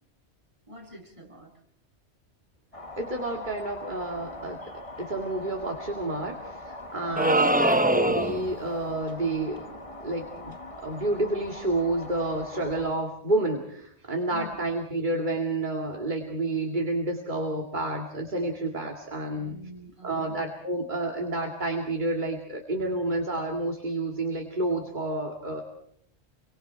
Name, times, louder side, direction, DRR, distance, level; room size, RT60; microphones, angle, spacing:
voice 1, 0.7-1.5 14.3-14.6 19.3-20.4, left 1 dB, 25° right, -1 dB, 7.3 m, -45 dB
sound 1, 2.7-12.9, left 2 dB, 30° left, 1.7 m, -42 dB
voice 2, 3.0-4.6 5.0-9.7 10.0-10.6 10.8-19.5 20.0-25.6, right 2 dB, 45° right, 2 dB, 2.5 m, -30 dB
sound 2, 7.2-8.5, right 1 dB, 10° right, 0.7 m, -22 dB
29.0 x 24.5 x 4.6 m, 0.69 s
omnidirectional pair, 1.2 m